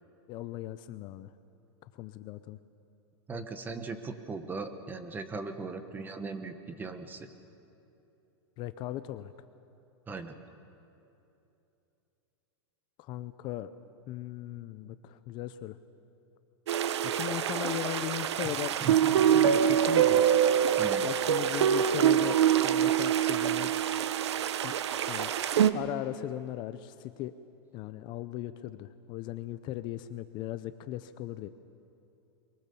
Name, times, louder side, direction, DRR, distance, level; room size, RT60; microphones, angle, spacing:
voice 1, 0.3-1.3 1.8-2.6 8.6-9.3 13.0-13.7 14.1-15.8 17.0-20.2 21.0-23.7 24.4-25.3 25.7-27.3 27.7-31.5, left 13 dB, 35° left, 12 dB, 0.6 m, -38 dB
voice 2, 3.3-7.3 10.1-10.3 18.8-19.0 20.8-21.1, right 3 dB, 15° right, 9 dB, 1.2 m, -38 dB
sound 1, 16.7-25.7, right 9 dB, 90° right, 1.0 m, -25 dB
23.0 x 21.0 x 6.9 m, 2.9 s
supercardioid pair, 150°, 14 cm